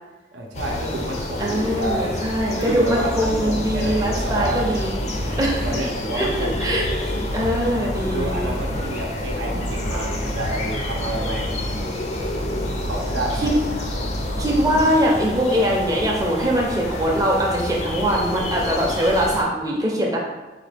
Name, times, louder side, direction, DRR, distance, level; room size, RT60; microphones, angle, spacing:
voice 1, 0.3-2.1 2.5-4.7 5.2-6.6 8.1-11.5 12.9-13.6, right 1 dB, 85° right, 0 dB, 0.6 m, -29 dB
sound 1, 0.5-19.4, left 1 dB, 35° left, 0.4 m, -29 dB
voice 2, 1.4-4.9 5.2-5.7 6.1-6.3 6.6-6.8 7.3-8.5 13.4-13.5 14.4-20.2, equal, 20° right, -3 dB, 0.5 m, -22 dB
sound 2, 3.2-15.4, equal, 90° left, 1.2 m, -30 dB
3.9 x 2.3 x 3.3 m, 1.2 s
head